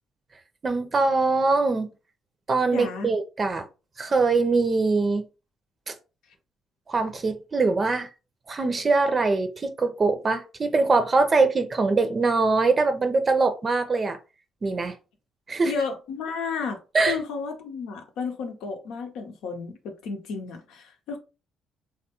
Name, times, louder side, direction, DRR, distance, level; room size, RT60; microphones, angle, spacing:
voice 1, 0.6-1.9 2.5-3.6 4.0-5.2 5.9-6.0 6.9-8.1 8.5-14.2 14.6-15.0 15.5-15.7 16.9-17.2, right 3 dB, 40° right, 0.5 m, -23 dB
voice 2, 2.7-3.1 15.6-16.8 17.1-21.2, left 5 dB, 75° left, 0.7 m, -32 dB
3.4 x 2.3 x 2.9 m
hypercardioid pair, 55°, 0 cm